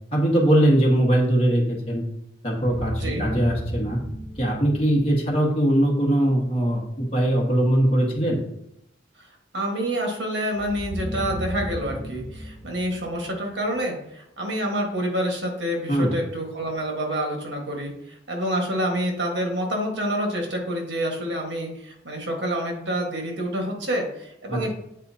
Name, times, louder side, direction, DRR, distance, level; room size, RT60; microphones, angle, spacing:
voice 1, 0.1-2.0 2.4-4.0 4.4-8.4 15.9-16.1 24.5-24.7, right 1 dB, 30° left, -3 dB, 1.6 m, -21 dB
sound 1, 2.6-5.6 10.5-13.8, equal, 25° right, 2.0 m, -34 dB
voice 2, 9.5-24.7, equal, 70° right, 1 dB, 1.4 m, -27 dB
8.2 x 4.1 x 2.7 m, 0.81 s
head